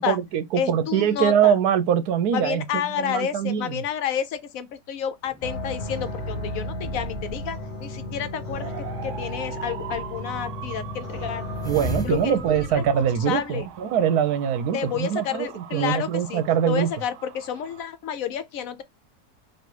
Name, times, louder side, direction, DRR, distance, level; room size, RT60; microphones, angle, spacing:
voice 1, 0.0-3.8 11.6-16.9, right 8 dB, 85° right, 1.2 m, -23 dB
voice 2, 0.5-1.5 2.3-8.7 9.0-11.5 12.0-13.7 14.7-18.8, left 9 dB, 70° left, 0.9 m, -30 dB
sound 1, 5.2-7.7 9.6-10.3 11.6-14.0, equal, 5° left, 0.4 m, -37 dB
sound 2, 5.4-11.9, left 1 dB, 35° left, 1.0 m, -33 dB
sound 3, 8.5-17.8, right 10 dB, 65° right, 0.8 m, -42 dB
3.3 x 2.6 x 4.4 m
omnidirectional pair, 1.6 m